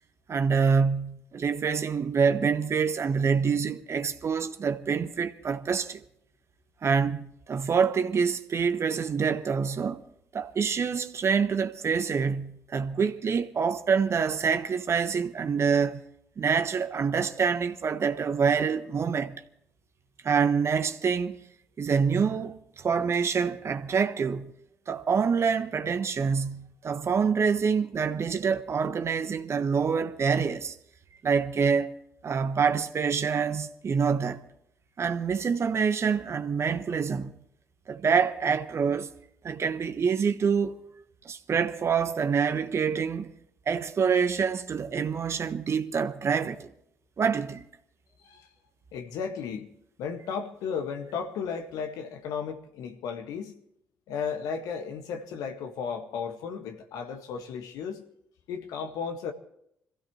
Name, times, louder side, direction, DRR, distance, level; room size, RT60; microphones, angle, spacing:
voice 1, 0.3-6.0 6.8-10.0 10.3-16.0 16.4-19.3 20.2-21.4 21.8-24.5 24.9-30.7 31.2-31.9 32.2-34.5 35.0-37.3 37.9-39.1 39.4-40.8 41.2-43.3 43.7-46.7 47.2-47.7, right 6 dB, 45° right, 1.3 m, -26 dB
voice 2, 48.9-49.7 50.0-53.5 54.1-58.0 58.5-59.3, left 6 dB, 70° left, 1.8 m, -34 dB
26.0 x 16.0 x 3.2 m
hypercardioid pair, 50°, 6 cm